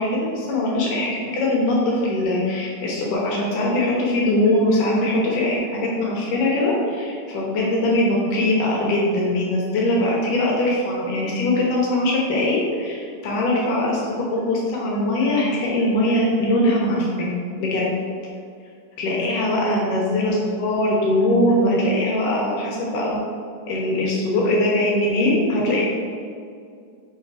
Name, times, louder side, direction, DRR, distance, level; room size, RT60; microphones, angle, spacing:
voice 1, 0.0-17.9 19.0-23.2 23.7-25.8, left 1 dB, 80° left, -4 dB, 2.5 m, -21 dB
6.9 x 3.3 x 4.6 m, 2.3 s
omnidirectional pair, 3.7 m